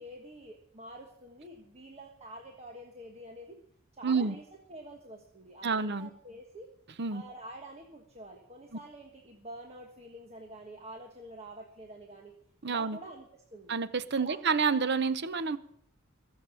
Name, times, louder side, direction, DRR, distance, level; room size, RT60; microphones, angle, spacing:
voice 1, 0.0-3.6 3.9-4.4 4.7-6.7 7.1-12.3 12.7-13.3 13.5-13.8 14.1-14.4 15.5-15.6, right 1 dB, 30° right, 1 dB, 1.4 m, -47 dB
voice 2, 4.0-4.3 5.6-6.1 7.0-7.2 12.6-13.0 13.7-15.6, right 5 dB, 50° right, 14 dB, 0.7 m, -29 dB
21.5 x 7.2 x 7.0 m, 0.67 s
head